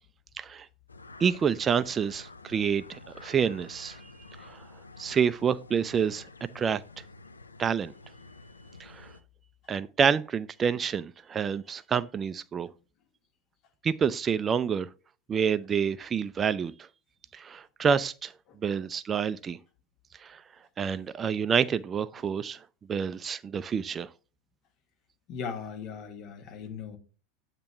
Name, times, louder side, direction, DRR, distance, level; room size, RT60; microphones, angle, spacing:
voice 1, 0.4-0.7 1.2-4.1 4.4-4.6 5.0-6.3 6.5-6.8 7.6-7.9 8.8-9.1 9.7-12.7 13.8-14.9 15.3-16.9 17.3-18.3 18.6-19.6 20.2-20.4 20.8-22.6 22.9-24.1, right 7 dB, 25° right, 0.3 m, -28 dB
sound 1, 0.9-9.2, left 3 dB, 85° left, 0.4 m, -50 dB
voice 2, 25.3-27.0, left 6 dB, 50° left, 1.4 m, -38 dB
8.5 x 2.9 x 5.7 m
figure-of-eight pair, 85°, 0 cm